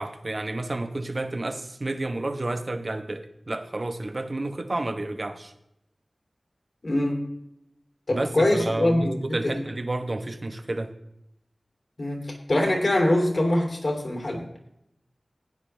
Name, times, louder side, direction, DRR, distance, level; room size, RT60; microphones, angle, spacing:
voice 1, 0.0-5.5 8.1-10.9, right 2 dB, 45° right, 7 dB, 1.1 m, -30 dB
voice 2, 6.8-7.2 8.1-9.6 12.0-14.4, left 1 dB, 55° left, 1 dB, 3.1 m, -24 dB
16.0 x 9.7 x 3.5 m, 0.79 s
wide cardioid pair, 70°, 0 cm